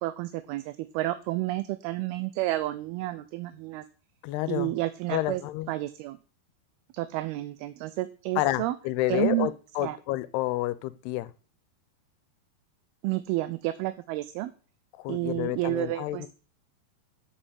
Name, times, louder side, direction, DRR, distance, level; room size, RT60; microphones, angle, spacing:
voice 1, 0.0-3.8 4.5-5.4 5.7-6.2 6.9-8.7 9.1-9.5 9.8-10.0 13.0-14.5 15.1-16.2, right 17 dB, 80° right, 2.5 m, -30 dB
voice 2, 4.2-4.8 5.1-5.7 8.4-11.3 15.0-16.3, left 16 dB, 85° left, 2.7 m, -29 dB
9.4 x 6.9 x 8.9 m
omnidirectional pair, 4.6 m